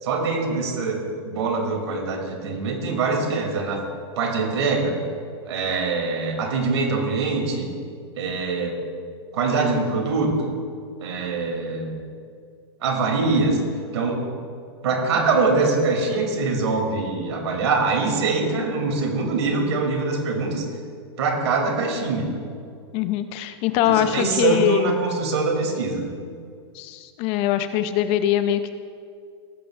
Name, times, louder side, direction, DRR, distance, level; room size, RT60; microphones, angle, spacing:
voice 1, 0.0-3.8 4.2-5.0 5.5-7.7 8.2-8.8 9.3-10.6 11.0-12.0 12.8-13.6 13.9-14.3 14.8-20.6 21.2-22.3 23.8-26.0, right 3 dB, 75° right, 1 dB, 3.1 m, -23 dB
voice 2, 22.9-24.9 26.7-28.7, left 11 dB, 45° left, 10 dB, 0.7 m, -22 dB
18.0 x 9.3 x 2.6 m, 2.3 s
hypercardioid pair, 125°, 14 cm